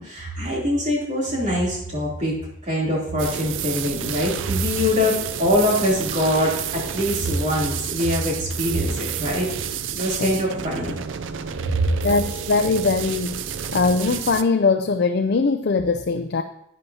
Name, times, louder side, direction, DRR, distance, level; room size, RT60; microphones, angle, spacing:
voice 1, 0.0-2.4 2.6-9.5 9.9-11.0 11.7-11.8, left 1 dB, 40° right, -4 dB, 3.1 m, -23 dB
sound 1, 3.2-14.4, right 8 dB, 75° right, 0.4 m, -30 dB
voice 2, 12.0-13.4 13.7-16.4, left 4 dB, 55° left, 7 dB, 0.4 m, -21 dB
11.0 x 9.3 x 2.8 m, 0.77 s
head